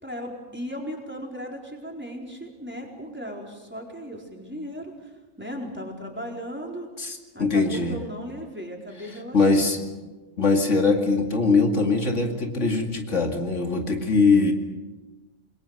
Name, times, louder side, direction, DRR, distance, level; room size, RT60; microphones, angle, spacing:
voice 1, 0.0-5.1 5.4-6.9 7.3-9.9, equal, 10° right, 0 dB, 4.4 m, -36 dB
voice 2, 7.0-8.0 9.3-9.8 10.4-14.5, left 3 dB, 75° left, 3 dB, 2.7 m, -21 dB
28.0 x 21.5 x 6.7 m, 1.2 s
omnidirectional pair, 1.3 m